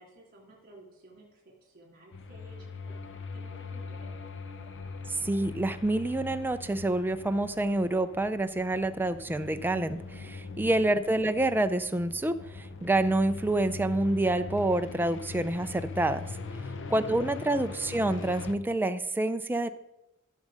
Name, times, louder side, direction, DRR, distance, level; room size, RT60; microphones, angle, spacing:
voice 1, 0.0-4.1, right 1 dB, 40° right, -2 dB, 3.1 m, -55 dB
sound 1, 2.1-18.5, left 4 dB, 60° left, 0.8 m, -41 dB
voice 2, 5.1-16.3 16.9-19.7, right 2 dB, 10° right, 9 dB, 0.4 m, -27 dB
14.5 x 6.5 x 4.9 m, 0.92 s
head